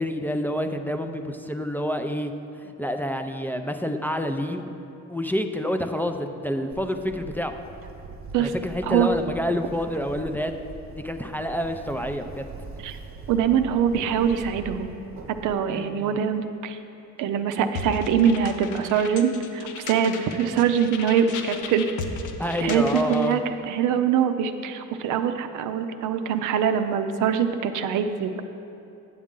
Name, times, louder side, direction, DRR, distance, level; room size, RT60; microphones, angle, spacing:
voice 1, 0.0-2.3 2.6-4.7 5.1-7.5 8.4-10.5 10.9-12.5 15.7-16.2 22.4-23.4, equal, 5° left, 5 dB, 0.4 m, -28 dB
Bird, 6.7-15.5, right 3 dB, 45° right, 0.8 m, -42 dB
voice 2, 13.3-14.9 15.4-16.8 17.2-21.9 22.6-23.4 23.7-28.5, right 8 dB, 85° right, 8 dB, 0.5 m, -23 dB
sound 1, 17.7-23.4, left 4 dB, 80° left, 0.7 m, -36 dB
9.4 x 7.2 x 3.7 m, 2.8 s
cardioid pair, 90°, 30 cm